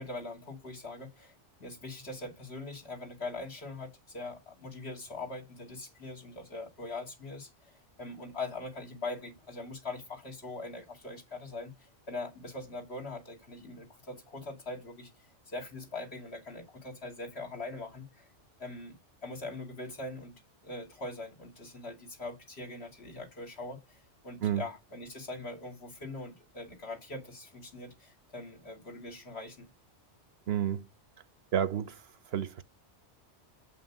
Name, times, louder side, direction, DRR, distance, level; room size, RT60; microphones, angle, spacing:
voice 1, 0.0-1.3 1.6-15.1 15.5-18.3 18.6-20.3 20.6-29.7, left 2 dB, 60° left, 2.8 m, -42 dB
voice 2, 30.5-30.8 31.5-32.0 32.3-32.6, right 9 dB, 65° right, 0.9 m, -30 dB
8.2 x 5.8 x 7.1 m
omnidirectional pair, 1.2 m